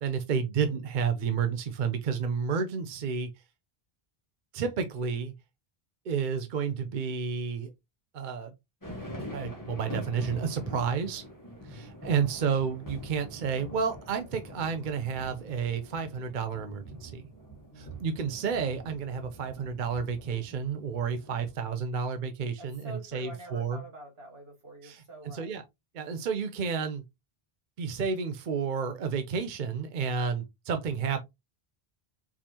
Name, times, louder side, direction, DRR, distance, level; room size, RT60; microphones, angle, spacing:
voice 1, 0.0-3.3 4.5-5.3 6.1-7.7 8.1-8.5 9.3-11.2 11.6-17.3 17.8-23.8 24.8-25.6 25.9-27.0 27.8-31.2, right 6 dB, 55° right, 0.7 m, -31 dB
sound 1, 8.8-21.6, equal, 20° left, 1.4 m, -44 dB
voice 2, 11.6-12.0 17.7-18.0 22.6-25.6, right 1 dB, 75° right, 2.3 m, -47 dB
4.7 x 3.5 x 2.8 m
omnidirectional pair, 1.0 m